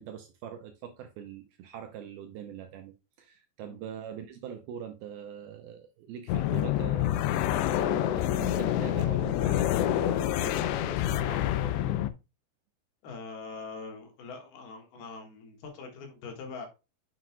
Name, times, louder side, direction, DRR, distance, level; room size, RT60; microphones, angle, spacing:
voice 1, 0.0-12.0, right 9 dB, 75° right, 2.3 m, -43 dB
sound 1, 6.3-12.1, left 12 dB, 85° left, 2.9 m, -27 dB
voice 2, 13.0-16.7, left 4 dB, 65° left, 3.4 m, -43 dB
7.6 x 7.5 x 2.3 m
omnidirectional pair, 5.1 m